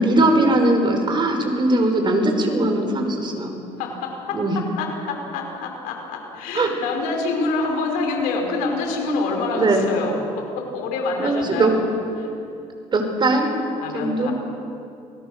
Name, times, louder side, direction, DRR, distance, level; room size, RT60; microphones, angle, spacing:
voice 1, 0.0-3.5 4.3-4.6 6.5-6.7 9.5-9.9 11.2-11.8 12.9-13.5 13.9-14.3, right 2 dB, 35° right, 4 dB, 4.9 m, -20 dB
voice 2, 3.8-4.4 4.8-11.8 12.2-12.3 13.8-14.3, left 3 dB, 85° left, 1 dB, 5.6 m, -26 dB
29.0 x 20.0 x 6.6 m, 2.6 s
cardioid pair, 95°, 14 cm